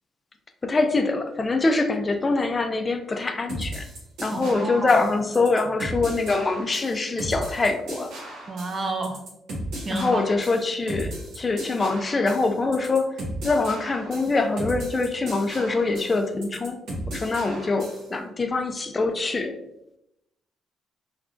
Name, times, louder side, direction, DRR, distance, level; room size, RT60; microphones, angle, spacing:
voice 1, 0.6-3.8 4.2-8.1 9.9-13.2 13.4-16.8 17.1-19.5, left 3 dB, 30° left, 6 dB, 0.3 m, -24 dB
sound 1, 3.5-18.1, right 1 dB, 85° right, 1.1 m, -36 dB
voice 2, 4.3-5.0 8.5-9.2 9.7-10.2, right 2 dB, 35° right, 5 dB, 0.5 m, -30 dB
3.6 x 2.2 x 2.5 m, 0.82 s
cardioid pair, 90°, 0 cm